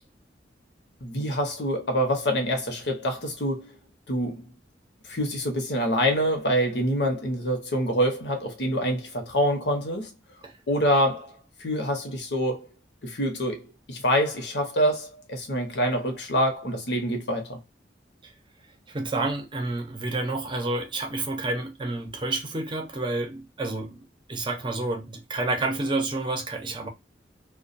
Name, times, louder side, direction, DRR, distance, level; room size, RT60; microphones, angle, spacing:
voice 1, 1.0-3.7 4.1-4.4 5.0-10.1 10.7-12.7 13.0-17.6, equal, 70° left, 0.9 m, -26 dB
voice 2, 18.9-26.9, right 2 dB, 25° right, 0.6 m, -29 dB
2.3 x 2.2 x 2.5 m
head